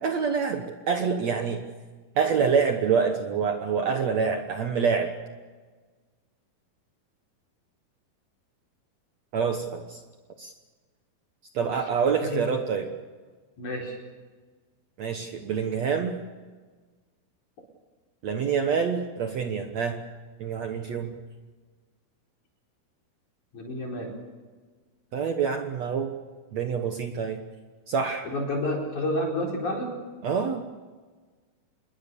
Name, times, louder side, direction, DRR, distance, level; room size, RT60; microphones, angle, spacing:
voice 1, 0.0-1.6 2.2-5.1 9.3-10.0 10.4-10.5 11.5-12.9 15.0-16.2 18.2-20.0 20.4-21.1 25.1-26.1 26.5-27.4 27.9-28.3 30.2-30.6, right 6 dB, 60° right, 5 dB, 2.1 m, -26 dB
voice 2, 13.6-14.0 23.5-24.1 28.2-30.0, left 1 dB, 55° left, 0 dB, 5.8 m, -29 dB
26.5 x 22.0 x 7.0 m, 1.4 s
omnidirectional pair, 4.3 m